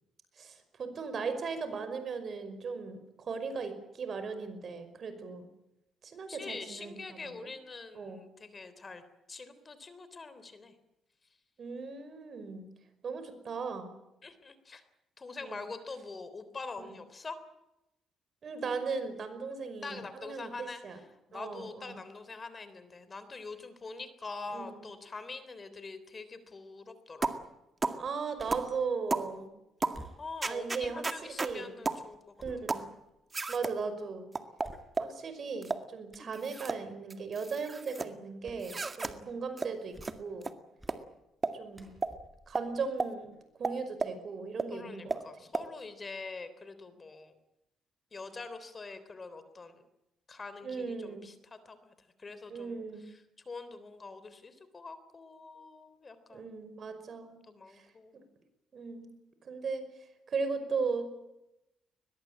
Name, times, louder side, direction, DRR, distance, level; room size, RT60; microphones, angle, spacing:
voice 1, 0.4-5.5 6.0-7.5 7.9-8.2 11.6-12.7 13.0-13.9 15.4-15.6 16.8-16.9 18.4-21.0 21.3-22.0 24.5-24.8 27.9-29.5 30.5-31.7 32.4-32.9 33.5-34.3 35.0-40.5 41.5-41.9 42.5-43.3 43.6-45.2 50.6-51.3 52.5-53.0 56.3-57.4 57.7-57.8 58.7-59.1 59.4-59.8 60.3-61.1, right 5 dB, 50° right, 10 dB, 5.4 m, -37 dB
voice 2, 6.3-9.0 9.3-10.7 14.2-14.8 15.2-17.4 19.8-21.0 21.3-27.4 30.2-32.2 44.7-47.4 48.1-49.8 50.3-56.5 57.5-58.3, left 3 dB, 30° left, 12 dB, 3.5 m, -44 dB
sound 1, 27.2-27.4 27.8-28.0 28.5-28.7 29.1-29.3 29.8-30.0 30.4-31.5 31.9-32.0 32.7-32.9 33.3-33.8 34.4-35.1 35.6-35.9 36.3-36.8 37.1-38.1 38.6-39.1 39.6-39.7 40.0-40.1 40.4-40.5 40.9-41.0 41.4-41.6 42.0-42.1 42.6-42.7 43.0-43.1 43.6-44.2 44.6-44.7 45.1-45.2 45.5-45.7, right 3 dB, 30° right, 2.0 m, -33 dB
sound 2, 28.4-28.8 29.9-31.7 32.1-33.2 33.7-33.8 34.6-35.3 36.1-36.4 38.4-38.7 39.0-39.4 39.8-40.4 40.8-41.1 41.7-43.4 43.8-43.9, right 1 dB, 10° right, 5.4 m, -53 dB
22.0 x 21.5 x 8.8 m, 0.90 s
cardioid pair, 90°, 0 cm